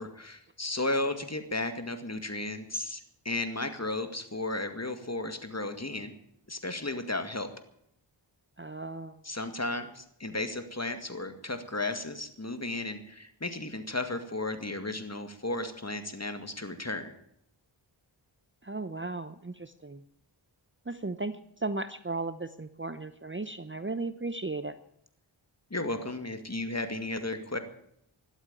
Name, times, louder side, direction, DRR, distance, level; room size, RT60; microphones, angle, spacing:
voice 1, 0.0-3.0 3.3-6.2 6.5-7.5 9.2-17.1 25.7-27.6, left 2 dB, 30° left, 8 dB, 2.1 m, -34 dB
voice 2, 8.6-9.2 18.6-20.0 20.9-21.3 21.6-24.7, right 3 dB, 25° right, 12 dB, 0.8 m, -35 dB
12.5 x 12.5 x 9.1 m, 0.73 s
wide cardioid pair, 45°, 49 cm